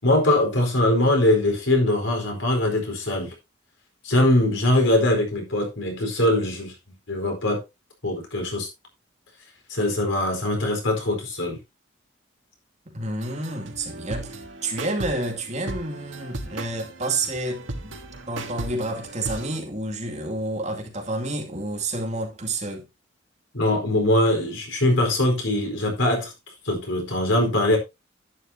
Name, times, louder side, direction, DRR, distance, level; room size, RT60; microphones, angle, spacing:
voice 1, 0.0-3.3 4.0-6.7 7.1-7.6 8.0-8.7 9.7-11.6 23.5-26.3 26.6-27.8, left 1 dB, 85° left, 4.5 m, -22 dB
voice 2, 12.9-18.0 18.3-22.9, right 2 dB, 35° right, 2.5 m, -29 dB
sound 1, 13.2-19.6, right 2 dB, 80° right, 1.7 m, -36 dB
11.0 x 10.5 x 2.8 m
head